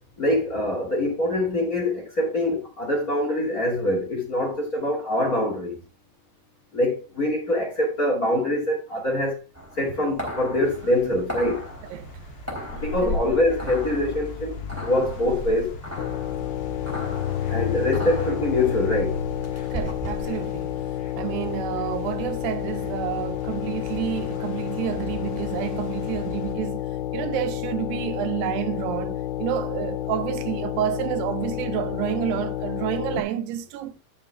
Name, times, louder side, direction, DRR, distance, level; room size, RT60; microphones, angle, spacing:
voice 1, 0.2-5.8 6.7-9.4 9.7-11.6 12.7-14.5 14.8-15.8 17.5-19.2, left 1 dB, 25° left, 2.2 m, -24 dB
sound 1, 9.5-20.3, left 1 dB, 5° right, 2.7 m, -36 dB
sound 2, 10.6-26.5, left 4 dB, 50° left, 1.4 m, -37 dB
voice 2, 11.9-12.3 13.0-13.2 16.1-16.2 16.7-16.9 17.4-17.5 19.7-34.0, right 12 dB, 90° right, 2.8 m, -30 dB
sound 3, 16.0-33.2, left 12 dB, 80° left, 2.7 m, -30 dB
10.5 x 6.9 x 3.5 m
omnidirectional pair, 4.7 m